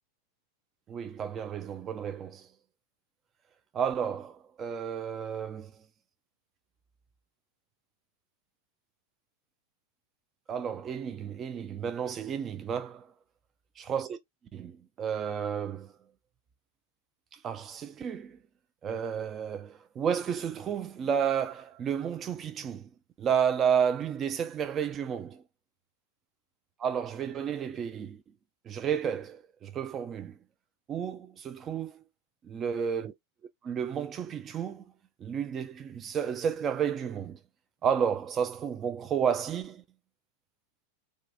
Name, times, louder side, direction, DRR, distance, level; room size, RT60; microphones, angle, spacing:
voice 1, 0.9-2.5 3.7-5.7 10.5-13.1 13.8-14.2 14.5-15.9 17.3-18.4 18.8-22.9 23.2-25.4 26.8-28.2 28.7-30.4 30.9-32.0 32.4-33.1 33.6-34.8 35.2-37.4 37.8-39.8, right 7 dB, 25° right, 0.3 m, -31 dB
2.4 x 2.2 x 2.6 m
figure-of-eight pair, 90°, 0 cm